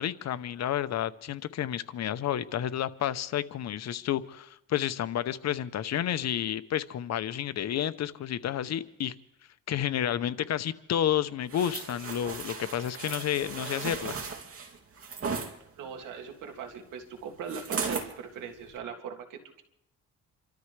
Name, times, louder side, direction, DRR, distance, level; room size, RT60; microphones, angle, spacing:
voice 1, 0.0-9.1 9.7-14.2, left 10 dB, 60° left, 13 dB, 0.8 m, -30 dB
sound 1, 11.5-15.5 17.5-18.1 18.6-18.8, right 5 dB, 45° right, 2.7 m, -36 dB
voice 2, 15.8-19.6, right 6 dB, 90° right, 3 dB, 2.3 m, -40 dB
28.5 x 13.0 x 3.3 m, 0.81 s
cardioid pair, 90°, 30 cm